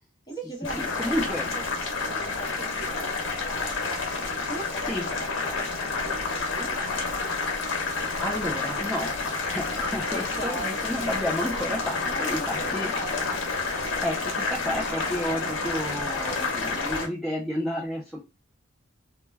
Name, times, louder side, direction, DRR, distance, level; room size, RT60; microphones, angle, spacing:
voice 1, 0.3-4.1 4.5-6.7 10.1-10.8 12.0-13.3, right 1 dB, 20° left, -3 dB, 0.9 m, -40 dB
Boiling, 0.6-17.1, left 3 dB, 70° left, 0.9 m, -29 dB
voice 2, 0.8-1.5 4.9-5.0 7.5-12.9 14.0-18.2, equal, ahead, -5 dB, 0.4 m, -31 dB
2.2 x 2.1 x 3.2 m, 0.27 s
head